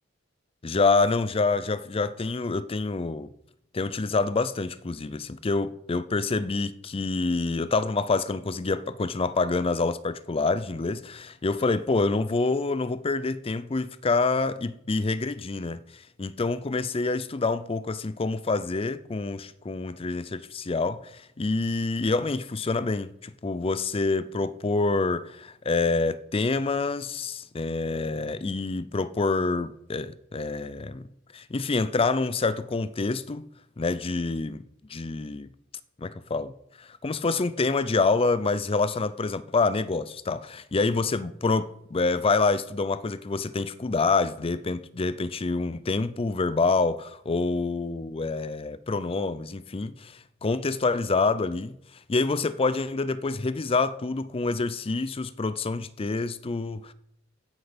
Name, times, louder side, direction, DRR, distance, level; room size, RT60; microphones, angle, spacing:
voice 1, 0.6-3.3 3.7-31.1 31.3-33.4 33.8-34.6 34.9-35.5 36.0-36.5 36.8-51.8 52.1-56.9, left 3 dB, 30° left, 0.5 m, -27 dB
15.5 x 6.2 x 5.2 m
head